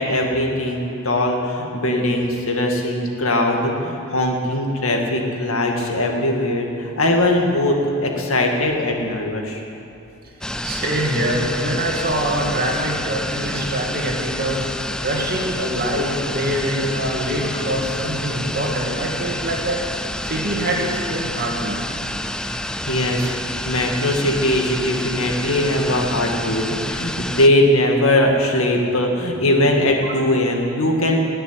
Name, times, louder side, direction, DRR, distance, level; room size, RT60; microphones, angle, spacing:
voice 1, 0.0-9.6 22.9-23.3 23.7-31.3, left 1 dB, 80° left, 1 dB, 2.0 m, -20 dB
sound 1, 10.4-27.5, left 1 dB, 5° left, 0.3 m, -28 dB
voice 2, 10.6-14.7 15.0-19.8 20.2-21.8 26.9-27.0 30.0-30.1, right 1 dB, 45° right, -1 dB, 2.4 m, -24 dB
19.0 x 7.0 x 9.8 m, 2.7 s
head